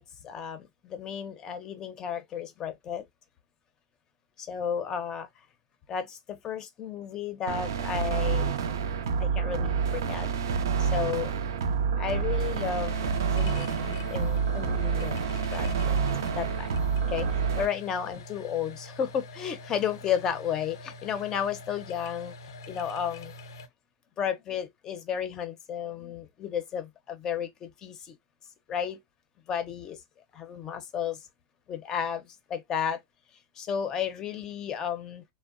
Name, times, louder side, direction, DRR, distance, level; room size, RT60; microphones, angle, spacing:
voice 1, 0.0-3.1 4.4-5.3 5.9-8.6 9.2-10.3 10.8-11.3 12.0-15.2 15.5-16.0 16.4-16.7 17.1-22.3 22.7-23.3 24.2-28.2 28.7-29.0 29.5-30.0 30.3-31.2 31.7-33.0 33.6-35.2, left 8 dB, 30° left, 0.5 m, -33 dB
sound 1, 7.5-17.7, right 6 dB, 90° right, 0.4 m, -28 dB
sound 2, 12.3-23.7, left 2 dB, 90° left, 0.5 m, -45 dB
2.8 x 2.0 x 2.4 m
supercardioid pair, 130°, 2 cm